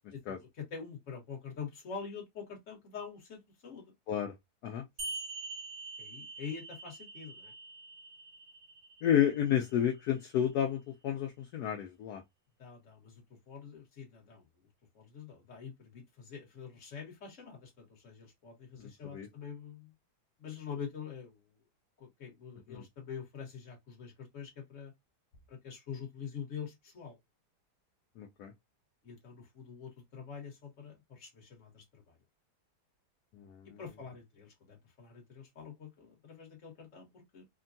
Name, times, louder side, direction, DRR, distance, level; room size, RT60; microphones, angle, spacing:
voice 1, 0.1-3.9 4.7-4.8 6.0-7.5 12.6-14.5 14.9-19.9 20.4-21.5 22.0-24.9 25.5-27.2 29.0-32.2 33.6-37.5, left 6 dB, 50° left, 1.6 m, -46 dB
sound 1, 5.0-10.0, right 3 dB, 55° right, 0.6 m, -45 dB
voice 2, 9.0-12.2 18.8-19.3 22.7-22.8 28.2-28.5 33.4-33.8, left 9 dB, 75° left, 1.1 m, -31 dB
3.4 x 2.2 x 2.5 m
omnidirectional pair, 1.8 m